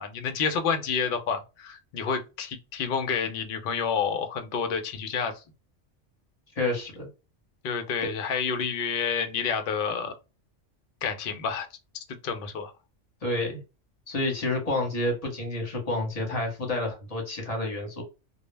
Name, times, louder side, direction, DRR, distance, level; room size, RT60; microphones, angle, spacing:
voice 1, 0.0-5.4 7.6-10.1 11.0-11.7 11.9-12.7, left 6 dB, 60° left, 0.6 m, -29 dB
voice 2, 6.6-7.1 13.2-13.6 14.1-18.0, left 2 dB, 35° left, 0.9 m, -29 dB
2.2 x 2.0 x 3.1 m
omnidirectional pair, 1.2 m